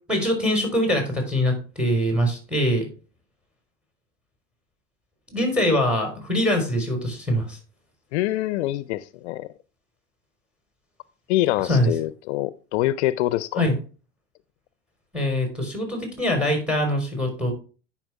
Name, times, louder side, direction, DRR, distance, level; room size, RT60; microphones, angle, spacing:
voice 1, 0.1-2.9 5.3-7.6 11.6-11.9 13.6-13.8 15.1-17.5, left 1 dB, 5° right, 3 dB, 4.0 m, -23 dB
voice 2, 8.1-9.5 11.3-13.6, left 15 dB, 70° left, 17 dB, 0.6 m, -25 dB
9.1 x 5.9 x 4.7 m, 0.36 s
supercardioid pair, 115°, 36 cm